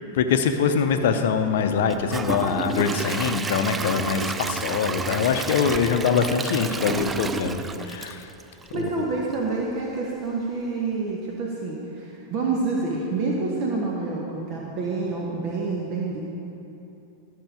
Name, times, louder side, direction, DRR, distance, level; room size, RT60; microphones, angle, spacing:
voice 1, 0.1-8.3 8.7-9.1, left 6 dB, 55° left, 7 dB, 0.7 m, -23 dB
Gurgling / Toilet flush / Trickle dribble, 1.9-8.9 9.3-9.4 9.9-10.0, right 4 dB, 15° right, 0.3 m, -31 dB
voice 2, 8.7-16.2, right 3 dB, 40° right, -2 dB, 1.2 m, -28 dB
13.0 x 6.6 x 4.8 m, 2.8 s
figure-of-eight pair, 90°, 0 cm